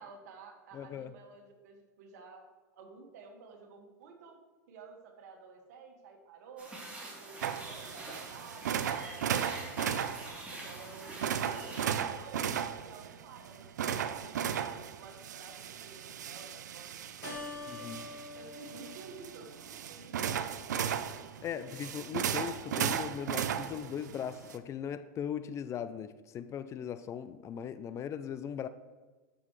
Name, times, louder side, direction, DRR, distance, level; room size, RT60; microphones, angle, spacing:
voice 1, 0.0-2.4 2.7-4.4 4.7-6.7 7.0-9.6 10.4-16.9 17.2-19.5 19.9-21.0, right 5 dB, 70° right, 2 dB, 1.9 m, -52 dB
voice 2, 0.7-1.1 17.7-18.0 21.4-28.7, left 8 dB, 30° left, 13 dB, 0.5 m, -39 dB
sound 1, 6.6-11.8, right 2 dB, 15° right, 3.1 m, -45 dB
sound 2, 7.4-24.6, right 8 dB, 85° right, 0.6 m, -36 dB
Keyboard (musical), 17.2-20.1, left 3 dB, 80° left, 2.0 m, -46 dB
13.5 x 6.2 x 3.2 m, 1.3 s
hypercardioid pair, 110°, 9 cm